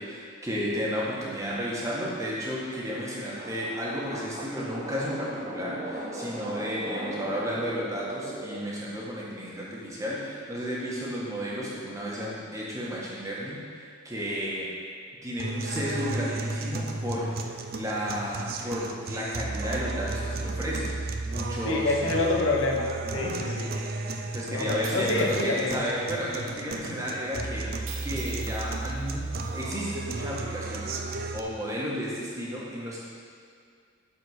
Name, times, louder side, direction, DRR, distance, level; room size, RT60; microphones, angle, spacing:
voice 1, 0.0-14.7 15.2-21.9 23.0-23.4 24.3-33.0, equal, 15° right, -6 dB, 1.5 m, -33 dB
sound 1, 3.4-8.6, right 1 dB, 30° right, 1.0 m, -38 dB
sound 2, 15.4-31.4, right 3 dB, 45° right, 0.5 m, -34 dB
voice 2, 21.6-23.7 24.5-25.9, left 2 dB, 65° left, 0 dB, 1.0 m, -27 dB
sound 3, 24.8-25.5 26.1-26.2 27.9-29.6, right 5 dB, 65° right, 1.1 m, -44 dB
9.3 x 4.5 x 6.5 m, 2.3 s
head